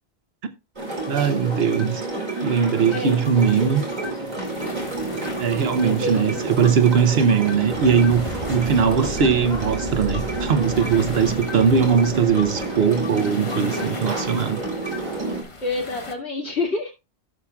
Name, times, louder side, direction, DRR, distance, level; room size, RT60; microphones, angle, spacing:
sound 1, 0.8-15.4, right 2 dB, 40° right, 2.8 m, -29 dB
voice 1, 1.1-2.0 2.4-3.8 5.4-14.6, right 6 dB, 70° right, 1.0 m, -20 dB
voice 2, 2.9-3.7 4.4-4.7 5.8-6.4 15.6-16.9, left 2 dB, 85° left, 2.8 m, -29 dB
sound 2, 3.6-13.0, right 1 dB, 85° right, 1.9 m, -37 dB
sound 3, 4.5-16.1, left 3 dB, 30° left, 1.1 m, -41 dB
16.0 x 7.0 x 2.4 m
omnidirectional pair, 1.1 m